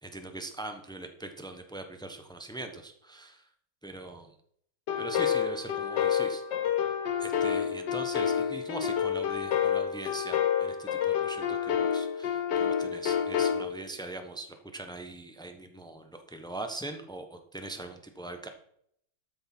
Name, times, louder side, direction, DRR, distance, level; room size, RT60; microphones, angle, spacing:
voice 1, 0.0-3.5 3.8-4.3 5.0-6.4 7.2-18.5, right 2 dB, 5° left, 6 dB, 0.4 m, -41 dB
sound 1, 4.9-13.6, left 8 dB, 60° left, 1.6 m, -28 dB
13.0 x 6.5 x 6.0 m, 0.68 s
omnidirectional pair, 2.3 m